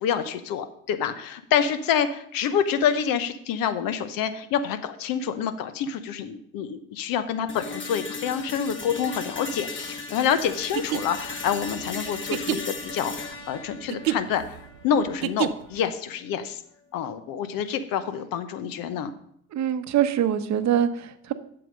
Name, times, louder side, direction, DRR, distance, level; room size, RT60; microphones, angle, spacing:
voice 1, 0.0-14.6 14.8-16.6 16.9-19.1, left 8 dB, 55° left, 11 dB, 0.9 m, -27 dB
sound 1, 7.5-15.5, left 3 dB, 30° left, 1.7 m, -36 dB
sound 2, 10.6-15.9, right 14 dB, 85° right, 0.5 m, -30 dB
voice 2, 19.5-21.3, right 9 dB, 45° right, 11 dB, 0.9 m, -24 dB
7.6 x 6.9 x 5.2 m, 0.68 s
hypercardioid pair, 70°, 40 cm